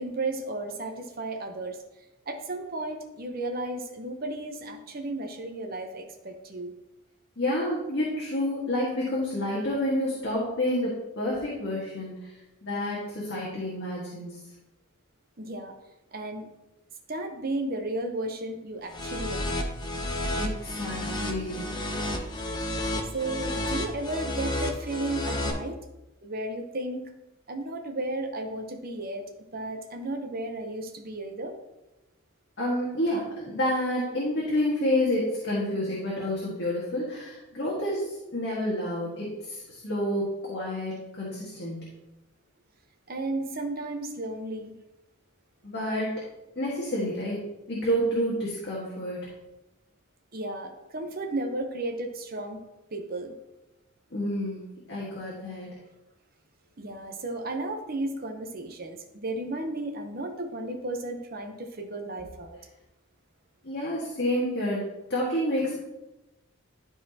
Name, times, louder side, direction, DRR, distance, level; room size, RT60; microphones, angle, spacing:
voice 1, 0.0-1.8 2.3-6.7 15.4-15.7 16.1-16.5 17.1-19.6 23.1-25.8 26.2-27.1 27.5-29.3 29.5-31.5 43.1-44.7 50.3-52.6 52.9-53.3 56.8-62.6, right 2 dB, 40° right, 4 dB, 0.8 m, -34 dB
voice 2, 7.4-12.3 12.6-14.4 20.3-21.7 32.6-41.9 45.6-46.1 46.5-49.3 54.1-54.6 54.9-55.7 63.6-65.8, left 1 dB, 50° left, -6 dB, 1.6 m, -29 dB
sound 1, 18.9-25.5, left 1 dB, 20° left, 0.7 m, -31 dB
12.0 x 4.1 x 2.8 m, 0.97 s
head